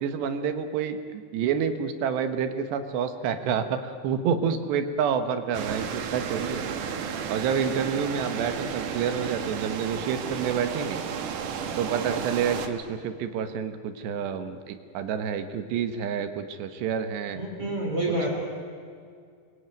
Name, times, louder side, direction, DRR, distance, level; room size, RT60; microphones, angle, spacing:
voice 1, 0.0-6.6 7.3-11.0 11.8-17.4 18.1-18.3, right 7 dB, 70° right, 9 dB, 3.2 m, -28 dB
sound 1, 5.5-12.7, right 7 dB, 55° right, 2.6 m, -33 dB
voice 2, 17.4-18.3, right 1 dB, 30° right, -1 dB, 4.5 m, -28 dB
28.5 x 23.0 x 9.2 m, 2.2 s
omnidirectional pair, 5.3 m